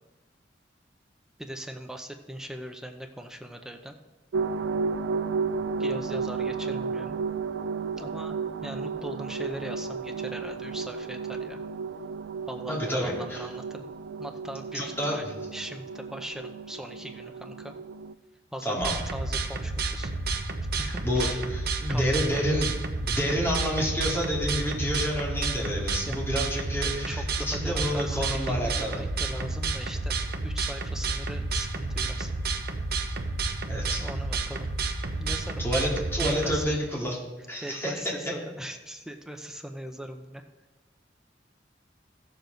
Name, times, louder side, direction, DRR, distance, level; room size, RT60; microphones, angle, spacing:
voice 1, 1.4-4.0 5.8-7.2 8.0-11.6 12.5-13.8 14.2-15.2 15.5-17.7 18.5-20.1 20.8-21.4 21.9-22.6 26.1-26.3 27.0-30.1 30.4-32.3 34.0-34.7 35.2-35.7 36.2-36.8 37.6-40.4, right 1 dB, 5° right, 4 dB, 0.6 m, -40 dB
sound 1, 4.3-18.1, right 5 dB, 75° right, 0.4 m, -33 dB
voice 2, 12.7-13.4 14.7-15.4 18.6-18.9 20.8-22.7 23.0-29.0 33.7-34.0 35.6-37.2 37.5-38.1, equal, 15° left, -4 dB, 2.3 m, -29 dB
sound 2, 18.8-36.6, right 3 dB, 55° right, 0.8 m, -30 dB
15.5 x 6.9 x 3.9 m, 1.2 s
head